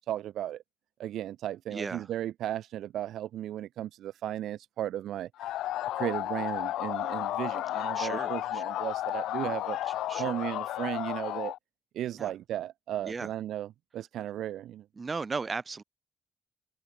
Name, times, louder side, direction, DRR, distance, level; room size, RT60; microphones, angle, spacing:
voice 1, 0.1-0.6 1.0-5.3 6.0-9.8 10.2-11.5 11.9-14.8, right 12 dB, 75° right, 2.6 m, -35 dB
voice 2, 1.7-2.1 8.0-8.6 10.1-10.4 12.2-12.3 13.0-13.3 15.0-15.8, right 4 dB, 30° right, 7.2 m, -36 dB
sound 1, 5.4-11.6, left 14 dB, 85° left, 2.8 m, -33 dB
cardioid pair, 90°, 0 cm